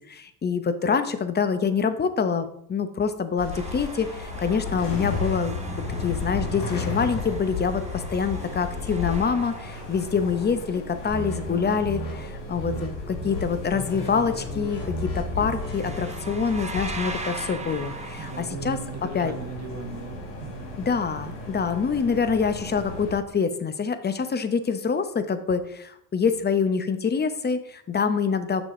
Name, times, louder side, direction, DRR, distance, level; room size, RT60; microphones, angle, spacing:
voice 1, 0.1-18.8 19.1-19.3 20.8-28.6, left 6 dB, 20° left, 10 dB, 0.8 m, -26 dB
sound 1, 3.4-23.2, left 3 dB, 80° left, 1.7 m, -34 dB
sound 2, 3.5-10.6 14.9-15.1 15.4-18.4, right 3 dB, 15° right, 1.1 m, -40 dB
sound 3, 11.1-12.1 12.6-12.9 13.1-13.4 13.7-17.0, equal, 60° left, 2.8 m, -35 dB
voice 2, 18.2-20.8, right 5 dB, 35° right, 6 dB, 1.3 m, -37 dB
6.3 x 6.1 x 3.7 m, 0.70 s
hypercardioid pair, 70°, 46 cm